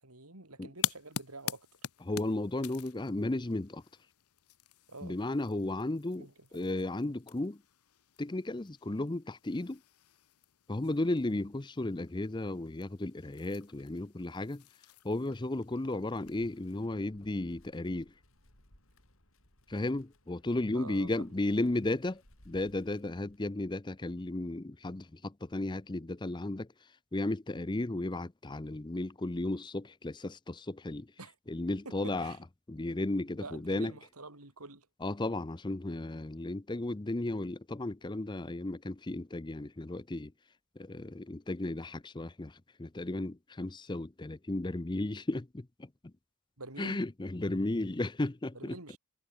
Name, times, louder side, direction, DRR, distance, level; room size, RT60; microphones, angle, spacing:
voice 1, 0.0-1.7 4.9-5.2 6.2-6.3 20.7-21.3 31.2-31.3 31.8-32.4 33.4-34.9 46.6-47.1 48.5-49.0, right 3 dB, 80° right, 4.9 m, -47 dB
sound 1, 0.8-16.8, left 11 dB, 90° left, 0.9 m, -45 dB
voice 2, 2.0-3.8 5.0-7.6 8.2-9.8 10.7-14.6 15.0-18.1 19.7-26.7 27.1-31.1 31.5-32.4 32.7-33.9 35.0-40.3 40.8-46.1 46.8-48.8, left 2 dB, 20° left, 0.6 m, -34 dB
Wind, 16.0-23.7, left 1 dB, 65° left, 7.1 m, -64 dB
head